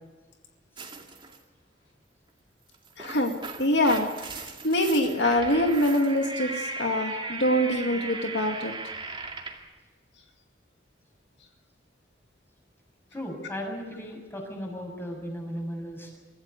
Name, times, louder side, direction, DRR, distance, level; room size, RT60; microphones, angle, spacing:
sound 1, 0.8-1.4 2.7-9.7, right 3 dB, 30° right, 2.2 m, -37 dB
voice 1, 3.0-3.3 3.6-4.1 4.6-8.7, left 1 dB, 75° left, 4 dB, 2.3 m, -24 dB
voice 2, 13.1-16.2, equal, 15° left, 1 dB, 6.6 m, -36 dB
25.0 x 15.0 x 8.3 m, 1.3 s
head